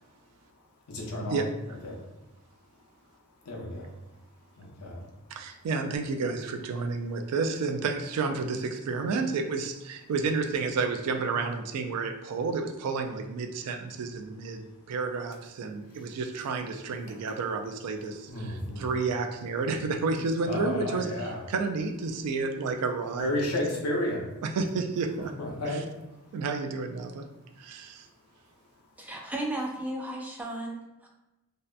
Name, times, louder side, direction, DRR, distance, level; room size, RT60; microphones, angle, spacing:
voice 1, 0.9-1.5 1.8-2.0 3.4-3.9 4.6-5.0 16.0-16.1 17.3-17.4 18.3-18.9 20.4-21.4 23.2-24.3 25.4-25.8, left 1 dB, 85° left, -1 dB, 0.6 m, -32 dB
voice 2, 5.3-14.6 14.9-23.3 24.4-25.3 25.6-25.8 26.3-27.3 27.6-28.1, right 4 dB, 90° right, 5 dB, 0.3 m, -31 dB
voice 3, 29.0-31.1, right 1 dB, 5° right, 0 dB, 0.3 m, -34 dB
2.7 x 2.1 x 2.3 m, 1.0 s
head